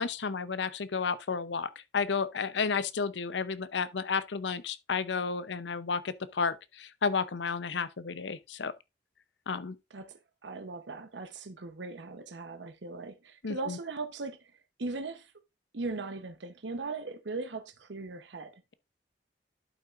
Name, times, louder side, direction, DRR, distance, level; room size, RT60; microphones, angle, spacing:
voice 1, 0.0-8.7 9.5-9.8 13.4-13.8, left 5 dB, 80° left, 0.7 m, -32 dB
voice 2, 9.9-14.4 14.8-15.3 15.7-18.6, right 3 dB, 85° right, 0.9 m, -39 dB
11.5 x 5.7 x 2.5 m
head